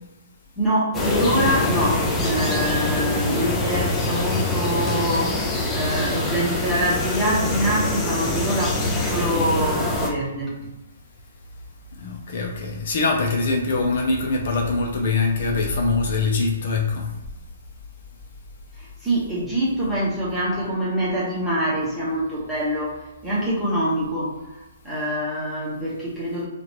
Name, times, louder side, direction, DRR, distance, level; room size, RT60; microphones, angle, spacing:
voice 1, 0.6-5.4 5.7-10.5 18.8-24.4 24.8-26.5, right 1 dB, 5° right, -7 dB, 1.1 m, -25 dB
sound 1, 0.9-10.1, left 2 dB, 15° left, 0.7 m, -24 dB
voice 2, 12.0-17.1, left 3 dB, 50° left, 1 dB, 0.7 m, -23 dB
4.9 x 2.5 x 3.0 m, 1.0 s
hypercardioid pair, 170°, 0 cm